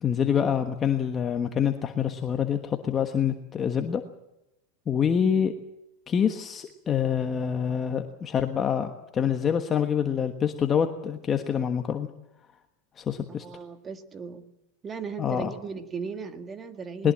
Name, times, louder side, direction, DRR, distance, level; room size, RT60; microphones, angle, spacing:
voice 1, 0.0-4.0 4.9-5.5 6.1-12.1 13.0-13.4 15.2-15.5 17.0-17.1, left 8 dB, 20° left, 6 dB, 1.3 m, -26 dB
voice 2, 13.3-14.5 14.8-17.1, right 5 dB, 20° right, 8 dB, 1.8 m, -37 dB
21.0 x 20.5 x 7.6 m, 0.87 s
supercardioid pair, 155°, 0 cm